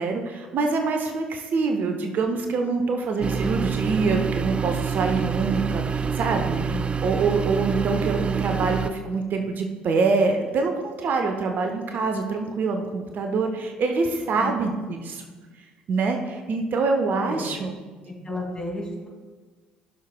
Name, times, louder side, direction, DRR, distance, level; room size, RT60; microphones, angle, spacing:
voice 1, 0.0-6.6 7.0-15.2 15.9-17.7, right 4 dB, 45° right, 4 dB, 0.8 m, -25 dB
sound 1, 3.2-8.9, right 6 dB, 25° right, 0.4 m, -27 dB
voice 2, 6.6-6.9 14.4-14.6 17.2-17.6 18.0-19.1, left 2 dB, 20° left, -2 dB, 2.4 m, -33 dB
15.0 x 6.4 x 2.2 m, 1.4 s
figure-of-eight pair, 50°, 4 cm